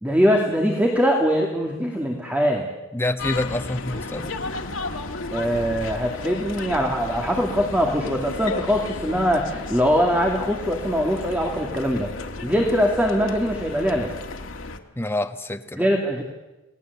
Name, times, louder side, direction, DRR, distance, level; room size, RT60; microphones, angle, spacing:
voice 1, 0.0-2.7 5.3-12.1 12.4-14.2 15.8-16.2, equal, 10° right, 1 dB, 2.4 m, -22 dB
voice 2, 2.9-4.3 15.0-15.9, left 1 dB, 10° left, 7 dB, 1.2 m, -27 dB
sound 1, 3.2-14.8, left 3 dB, 85° left, 1.9 m, -33 dB
28.5 x 19.0 x 8.3 m, 1.1 s
head